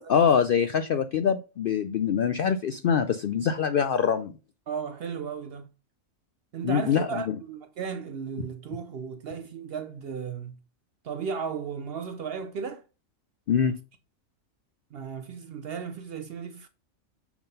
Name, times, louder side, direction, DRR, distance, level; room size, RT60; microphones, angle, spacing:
voice 1, 0.1-4.4 6.6-7.1 13.5-13.7, left 7 dB, 70° left, 0.5 m, -24 dB
voice 2, 4.7-5.7 6.5-10.6 11.0-12.8 14.9-16.7, right 6 dB, 65° right, 0.6 m, -35 dB
7.1 x 3.8 x 5.3 m
omnidirectional pair, 1.4 m